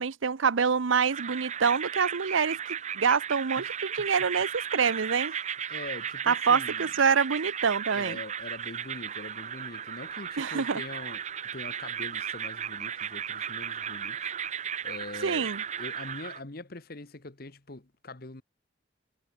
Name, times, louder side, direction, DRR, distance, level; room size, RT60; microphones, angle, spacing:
voice 1, 0.0-5.3 6.3-8.2 10.4-10.8 15.2-15.6, right 6 dB, 80° right, 0.7 m, -26 dB
sound 1, 1.1-16.4, right 8 dB, 35° right, 0.8 m, -35 dB
voice 2, 5.7-6.9 7.9-11.2 11.5-14.3 14.8-18.4, left 2 dB, 50° left, 1.3 m, -43 dB
head